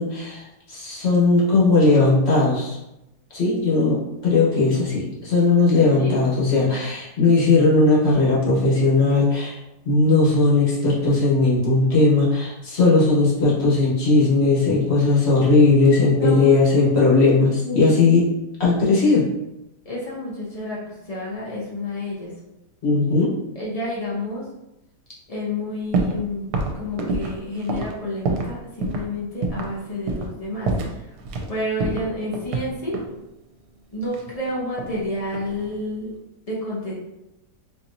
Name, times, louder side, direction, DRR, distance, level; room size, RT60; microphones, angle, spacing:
voice 1, 0.0-2.8 3.3-4.0 4.2-9.6 9.8-18.2 18.6-19.3 22.8-23.3, left 3 dB, 45° left, -6 dB, 1.1 m, -18 dB
voice 2, 5.9-6.3 16.2-16.6 17.6-18.0 19.8-22.3 23.5-24.5 25.3-31.2 31.5-33.0 33.9-36.1 36.5-36.9, left 1 dB, 70° left, -5 dB, 0.3 m, -30 dB
sound 1, 25.9-26.2 26.5-28.5 28.8-29.1 29.4-29.7 30.1-30.4 30.7-31.5 31.8-33.2 34.1-35.0 35.3-35.8, right 3 dB, 75° right, 1.1 m, -26 dB
4.1 x 2.9 x 2.6 m, 0.91 s
omnidirectional pair, 1.8 m